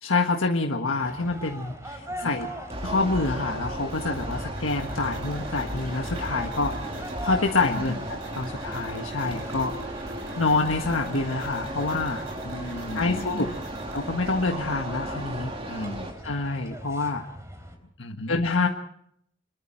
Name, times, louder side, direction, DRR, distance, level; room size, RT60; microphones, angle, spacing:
voice 1, 0.0-2.5 2.8-8.0 8.3-9.7 10.3-12.2 12.9-13.5 13.9-15.5 16.2-17.2 18.3-18.7, left 3 dB, 90° left, 2 dB, 1.6 m, -26 dB
sound 1, 1.0-17.8, right 1 dB, 15° right, 3.7 m, -42 dB
sound 2, 2.7-16.1, right 1 dB, 30° right, 3.2 m, -35 dB
sound 3, 3.9-14.5, right 3 dB, 70° right, 6.5 m, -49 dB
voice 2, 7.6-8.0 12.4-13.6 15.7-16.1 18.0-18.4, left 1 dB, 65° left, 7 dB, 1.8 m, -36 dB
26.5 x 22.0 x 4.6 m, 0.70 s
head